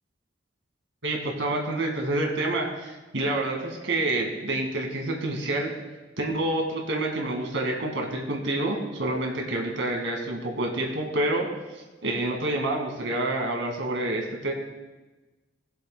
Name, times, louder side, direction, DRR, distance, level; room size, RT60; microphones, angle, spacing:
voice 1, 1.0-5.7 6.2-11.5 12.0-14.5, right 2 dB, 90° right, 1 dB, 2.0 m, -28 dB
20.0 x 7.6 x 2.2 m, 1.2 s
head